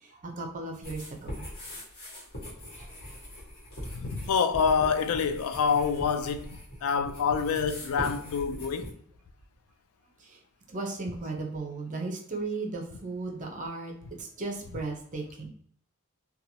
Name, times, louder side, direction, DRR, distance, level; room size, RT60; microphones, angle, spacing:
voice 1, 0.0-1.4 2.1-2.2 2.8-2.9 10.3-10.4 10.7-13.9 14.2-15.5, right 3 dB, 35° right, 0.6 m, -36 dB
sound 1, 0.8-8.9, equal, 50° left, 1.2 m, -41 dB
voice 2, 4.0-8.9, left 6 dB, 80° left, 0.3 m, -27 dB
2.9 x 2.3 x 2.7 m
head